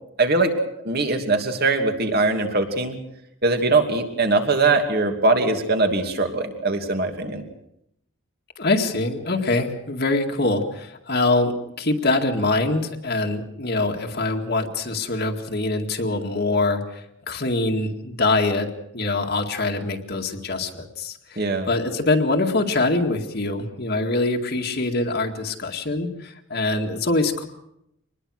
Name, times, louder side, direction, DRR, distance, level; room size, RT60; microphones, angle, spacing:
voice 1, 0.2-0.5 0.8-3.0 3.4-7.4 21.4-21.7, right 3 dB, 45° right, 5 dB, 2.7 m, -21 dB
voice 2, 8.6-18.7 18.9-27.5, left 2 dB, 50° left, 3 dB, 2.1 m, -24 dB
25.0 x 20.5 x 6.4 m, 0.78 s
head